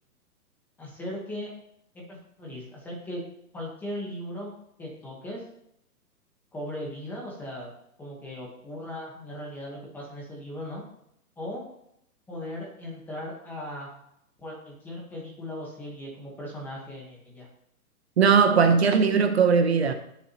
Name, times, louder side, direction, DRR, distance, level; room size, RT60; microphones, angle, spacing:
voice 1, 0.8-1.5 1.9-3.2 3.5-4.5 4.8-5.4 6.5-7.7 8.0-10.8 11.4-11.7 12.3-13.9 14.4-17.5, left 1 dB, 5° left, 1.1 m, -38 dB
voice 2, 18.2-19.9, right 6 dB, 45° right, 0.9 m, -19 dB
20.0 x 7.1 x 2.9 m
hypercardioid pair, 165°, 46 cm